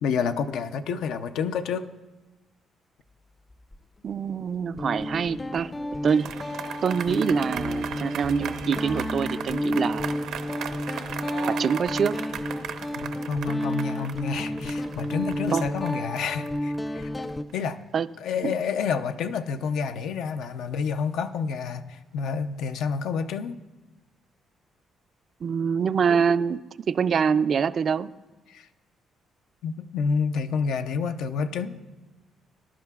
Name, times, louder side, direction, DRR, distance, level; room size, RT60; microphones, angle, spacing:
voice 1, 0.0-1.9 12.9-17.1 17.5-17.8 18.2-23.6 28.5-28.7 29.6-31.7, left 6 dB, 85° left, 8 dB, 0.5 m, -29 dB
Guitar, 3.5-3.8 4.8-17.4, left 1 dB, 20° left, 0.4 m, -31 dB
voice 2, 4.0-5.7 6.0-6.3 6.8-10.2 11.5-12.2 15.5-15.6 17.9-18.1 18.4-18.5 25.4-26.6 26.9-28.1, right 6 dB, 50° right, 15 dB, 0.3 m, -25 dB
sound 1, 6.1-17.5, right 8 dB, 85° right, 0.7 m, -37 dB
20.5 x 11.0 x 2.4 m, 1.2 s
cardioid pair, 90°, 0 cm